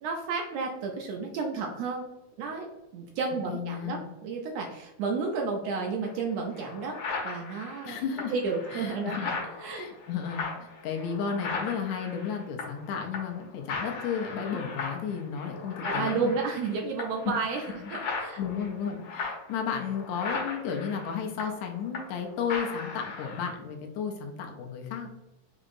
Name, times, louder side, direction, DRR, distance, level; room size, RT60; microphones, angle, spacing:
voice 1, 0.0-2.1 2.4-2.7 2.9-7.0 7.2-8.0 8.3-9.3 9.6-9.9 15.8-17.6 17.9-18.4, right 4 dB, 80° right, 1 dB, 1.6 m, -31 dB
voice 2, 3.5-4.0 7.8-8.3 8.7-9.3 9.7-16.3 17.8-17.9 18.4-25.1, left 7 dB, 80° left, 2 dB, 1.8 m, -33 dB
sound 1, 6.0-6.1 6.5-12.9 13.1-13.4 13.7-22.2 22.5-23.5, left 4 dB, 60° left, 1.6 m, -37 dB
6.1 x 2.8 x 2.5 m, 0.98 s
omnidirectional pair, 3.4 m